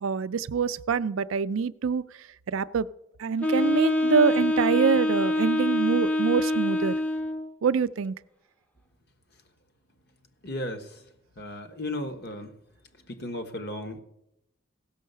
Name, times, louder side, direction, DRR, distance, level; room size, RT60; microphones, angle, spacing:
voice 1, 0.0-2.0 2.5-2.9 3.2-6.9 7.6-8.1, right 6 dB, 75° right, 15 dB, 0.4 m, -25 dB
Wind instrument woodwind instrument, 3.4-7.5, left 1 dB, 5° left, 0.6 m, -25 dB
voice 2, 10.4-10.9 11.4-12.5 13.1-14.0, left 1 dB, 50° left, 7 dB, 1.2 m, -35 dB
16.0 x 6.4 x 6.7 m, 0.83 s
head